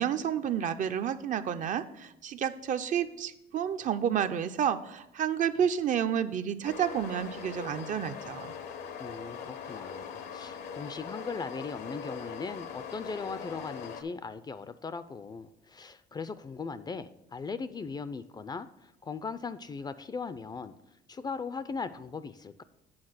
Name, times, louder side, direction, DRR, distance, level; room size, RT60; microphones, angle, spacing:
voice 1, 0.0-8.5, right 9 dB, 50° right, 10 dB, 0.5 m, -30 dB
sound 1, 6.6-14.0, left 6 dB, 80° left, 0.9 m, -41 dB
voice 2, 9.0-20.7 21.1-22.6, left 5 dB, 25° left, 13 dB, 0.4 m, -39 dB
8.7 x 3.8 x 6.4 m, 0.85 s
cardioid pair, 110°, 17 cm